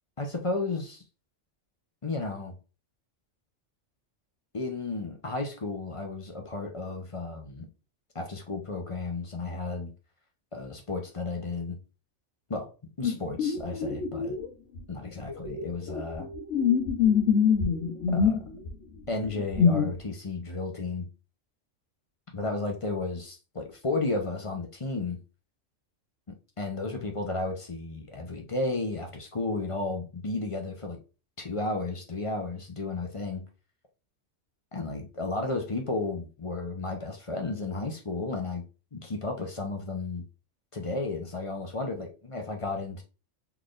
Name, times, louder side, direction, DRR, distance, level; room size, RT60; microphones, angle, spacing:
voice 1, 0.2-1.0 2.0-2.6 4.5-7.7 8.1-9.9 10.5-11.8 12.5-12.7 13.0-14.4 14.9-16.3 18.1-18.4 19.1-21.1 22.3-25.2 26.3-31.0 31.4-33.4 34.7-38.6 38.9-40.2 40.7-43.0, left 3 dB, 30° left, 0.7 m, -33 dB
sound 1, 13.0-14.5 14.7-14.8 15.3-18.7 19.2-20.0, left 6 dB, 75° left, 1.1 m, -25 dB
4.0 x 3.4 x 2.4 m
omnidirectional pair, 1.3 m